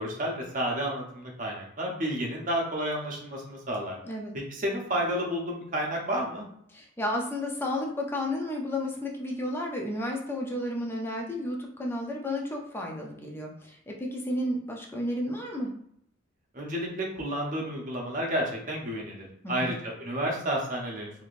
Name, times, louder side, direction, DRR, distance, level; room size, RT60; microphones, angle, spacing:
voice 1, 0.0-4.0 4.5-6.5 16.5-21.2, equal, 40° right, -1 dB, 0.7 m, -31 dB
voice 2, 6.7-15.7 19.4-19.8, left 1 dB, 10° left, 0 dB, 0.4 m, -32 dB
3.4 x 2.7 x 2.5 m, 0.70 s
head